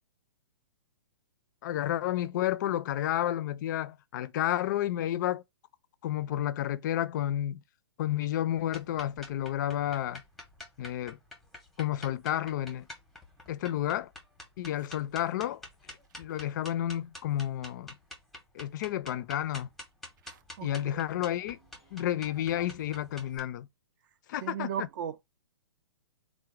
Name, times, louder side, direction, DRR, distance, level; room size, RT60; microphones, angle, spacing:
voice 1, 1.6-5.4 6.0-7.6 8.0-10.2 10.8-11.2 11.8-12.9 13.5-14.1 14.6-15.6 16.2-17.9 18.5-19.7 20.6-21.6 21.9-23.7 24.3-24.7, left 12 dB, 45° left, 0.4 m, -31 dB
sound 1, 8.7-23.4, left 1 dB, ahead, 0.7 m, -48 dB
voice 2, 20.2-20.7 24.4-25.3, right 8 dB, 45° right, 0.4 m, -36 dB
3.8 x 2.1 x 4.4 m
hypercardioid pair, 140°, 14 cm